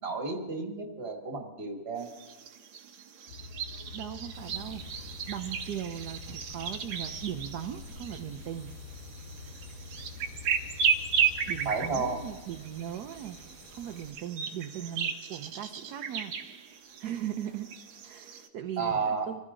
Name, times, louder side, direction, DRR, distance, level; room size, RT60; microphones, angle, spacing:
voice 1, 0.0-2.1 11.6-12.2 18.8-19.3, right 4 dB, 35° right, 3 dB, 1.8 m, -32 dB
sound 1, 2.0-18.5, right 7 dB, 90° right, 1.9 m, -35 dB
sound 2, 3.3-12.3, left 5 dB, 85° left, 3.1 m, -46 dB
voice 2, 3.9-8.7 11.5-13.4 13.7-16.3 17.0-17.7 18.0-19.4, right 10 dB, 65° right, 7 dB, 1.1 m, -38 dB
sound 3, 4.3-14.1, right 1 dB, 20° left, 2.7 m, -52 dB
25.0 x 15.0 x 3.8 m, 1.2 s
omnidirectional pair, 2.1 m